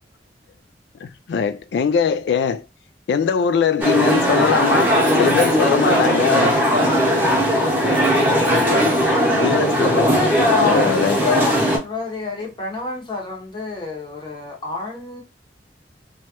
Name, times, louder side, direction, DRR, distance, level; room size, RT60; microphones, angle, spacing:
voice 1, 1.0-2.6 3.1-4.9 5.2-6.5 9.4-10.1 10.6-11.2, left 6 dB, 70° left, 0.3 m, -21 dB
sound 1, 3.8-11.8, equal, 10° right, 0.9 m, -18 dB
voice 2, 4.8-7.3 7.7-7.9 8.4-9.0, right 1 dB, 50° right, 0.7 m, -27 dB
voice 3, 9.9-15.2, left 4 dB, 25° left, 0.8 m, -26 dB
3.1 x 2.3 x 2.8 m
head